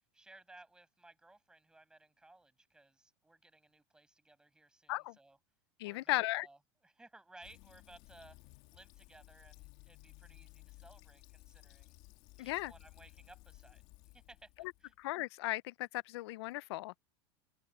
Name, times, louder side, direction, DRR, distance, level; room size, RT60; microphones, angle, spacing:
voice 1, 0.1-5.4 5.8-6.6 6.8-8.4 8.7-12.0 12.4-13.8 14.1-14.9, right 2 dB, 5° right, 6.7 m, -60 dB
voice 2, 5.8-6.5 12.4-12.7 15.0-17.0, left 19 dB, 70° left, 0.5 m, -36 dB
Fill (with liquid), 7.4-15.1, left 20 dB, 50° left, 2.1 m, -58 dB
supercardioid pair, 160°, 14 cm